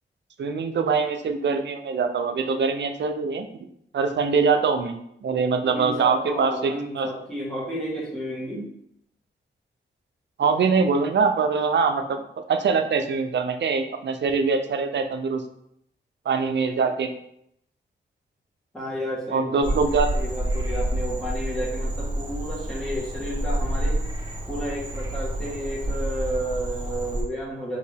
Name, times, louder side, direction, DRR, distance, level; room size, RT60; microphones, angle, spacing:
voice 1, 0.4-3.5 3.9-5.0 5.2-7.1 10.4-12.2 12.5-15.4 16.3-17.1 19.3-20.1, right 5 dB, 65° right, 7 dB, 0.5 m, -23 dB
voice 2, 5.7-8.7 18.7-24.0 24.5-27.8, equal, 5° left, -6 dB, 1.6 m, -32 dB
Frog, 19.6-27.2, right 1 dB, 25° right, 1.4 m, -28 dB
4.4 x 2.7 x 3.4 m, 0.74 s
cardioid pair, 75°, 20 cm